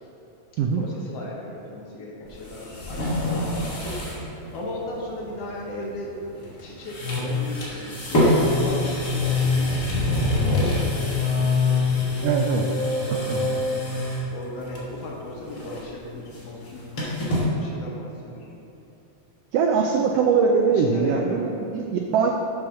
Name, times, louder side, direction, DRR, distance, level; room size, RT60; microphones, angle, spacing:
voice 1, 0.7-3.9 4.5-6.2 6.6-10.5 10.8-11.2 11.9-12.3 13.0-13.4 13.7-13.9 14.3-16.9 17.4-18.5 20.6-21.7, left 1 dB, 65° left, -2 dB, 1.9 m, -37 dB
sound 1, 2.3-4.2 4.5-4.6 6.3-6.6 6.9-14.3 14.7-15.1 15.3-17.5, left 2 dB, 45° left, 1.5 m, -24 dB
voice 2, 12.2-12.6 13.3-13.5 19.5-22.3, right 5 dB, 85° right, 2 dB, 1.4 m, -22 dB
7.2 x 4.6 x 6.3 m, 2.9 s
omnidirectional pair, 3.3 m